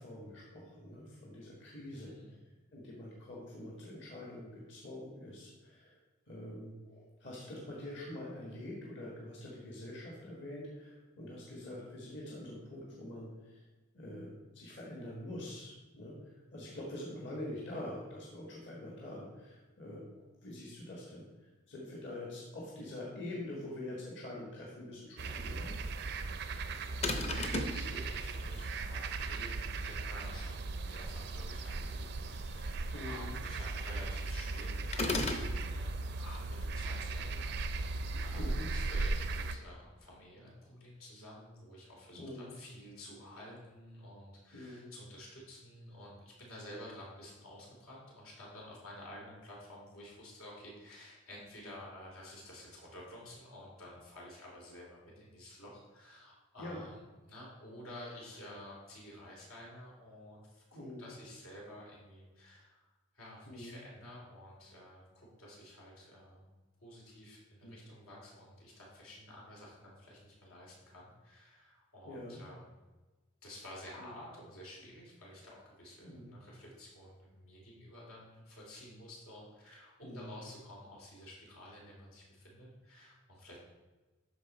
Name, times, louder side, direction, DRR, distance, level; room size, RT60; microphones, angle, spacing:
voice 1, 0.0-2.4 2.7-6.0 6.3-13.6 13.9-16.2 16.5-20.0 20.4-26.1 32.9-33.4 38.1-38.7 42.1-42.5 44.5-44.9 56.6-56.8 60.7-61.1 63.4-63.8 67.6-67.8 72.0-72.4 74.0-74.1 76.0-76.4 80.0-80.4, left 1 dB, 55° left, -4 dB, 1.5 m, -45 dB
voice 2, 1.9-2.4 26.7-57.0 57.3-62.9 63.1-66.4 66.8-72.7 73.4-83.6, left 1 dB, 85° left, -3 dB, 2.9 m, -51 dB
sound 1, 25.2-39.6, right 3 dB, 50° right, 0.4 m, -37 dB
sound 2, 27.0-27.8 34.9-35.5, left 2 dB, 30° left, 0.7 m, -33 dB
12.5 x 4.3 x 4.1 m, 1.2 s
head